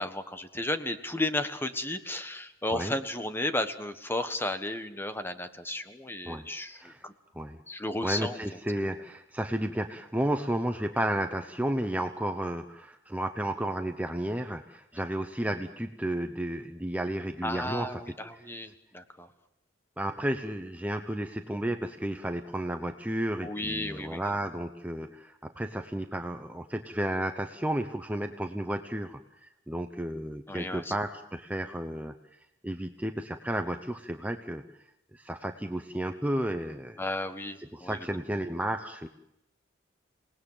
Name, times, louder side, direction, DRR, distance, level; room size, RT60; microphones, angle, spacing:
voice 1, 0.0-7.1 7.7-8.4 17.4-19.3 23.4-24.2 30.5-30.9 37.0-38.0, left 1 dB, 10° left, 9 dB, 1.4 m, -33 dB
voice 2, 8.0-18.4 20.0-32.1 32.6-34.6 35.1-37.0 37.7-39.1, right 1 dB, 10° right, 6 dB, 0.9 m, -32 dB
28.0 x 19.0 x 7.5 m, 0.80 s
head